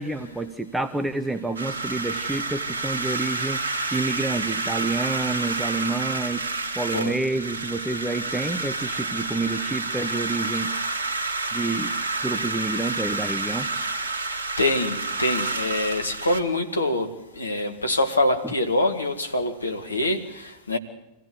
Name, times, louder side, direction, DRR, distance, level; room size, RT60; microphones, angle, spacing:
voice 1, 0.0-6.5 6.7-10.7 11.5-11.9 12.2-13.7, right 2 dB, 5° right, 9 dB, 1.0 m, -28 dB
sound 1, 1.6-16.4, right 3 dB, 70° right, 2.2 m, -29 dB
voice 2, 14.6-20.8, left 1 dB, 80° left, 5 dB, 2.2 m, -25 dB
25.0 x 16.5 x 8.1 m, 0.93 s
figure-of-eight pair, 90°, 0 cm